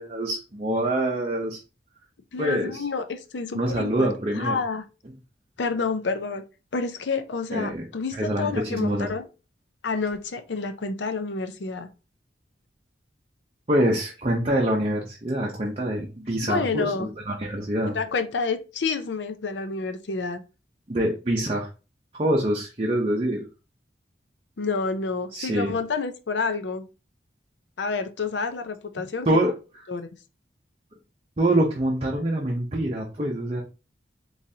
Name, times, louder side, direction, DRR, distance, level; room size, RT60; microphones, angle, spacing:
voice 1, 0.0-1.6 2.4-2.8 3.5-4.6 7.5-7.9 8.1-9.1 13.7-18.0 20.9-21.7 22.1-23.5 25.3-25.7 29.3-29.5 31.4-33.6, right 1 dB, 30° right, 0.6 m, -25 dB
voice 2, 2.3-4.1 4.3-4.8 5.6-6.4 6.7-9.3 9.8-11.9 16.4-17.1 17.9-20.4 24.6-26.9 27.8-29.3 29.9-30.1, left 4 dB, 80° left, 0.5 m, -29 dB
3.9 x 3.1 x 2.7 m
head